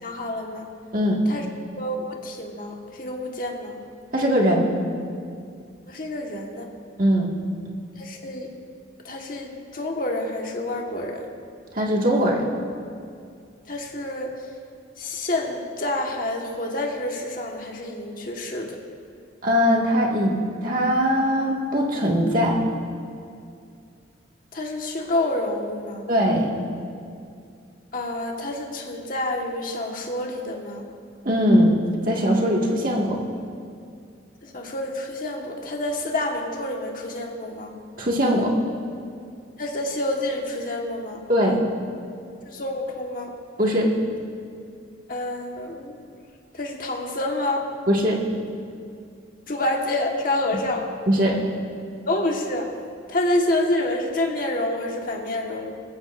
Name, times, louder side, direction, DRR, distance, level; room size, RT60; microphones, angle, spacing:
voice 1, 0.0-0.6 1.3-1.4 1.8-3.8 5.9-6.7 8.0-8.5 9.0-11.3 13.7-14.3 15.0-18.8 24.5-26.0 27.9-30.8 34.4-37.7 39.6-41.2 42.5-43.3 45.1-45.9 46.5-47.7 49.5-50.9 52.1-52.7 53.1-55.7, left 1 dB, 45° left, 1 dB, 1.5 m, -28 dB
voice 2, 4.1-4.7 7.0-7.3 11.7-12.5 19.4-22.6 26.1-26.5 31.2-31.8 32.0-33.2 38.0-38.5 41.3-41.6 43.6-43.9 47.9-48.2 51.1-51.3, equal, 45° right, -2 dB, 1.9 m, -20 dB
20.5 x 14.5 x 2.6 m, 2.4 s
head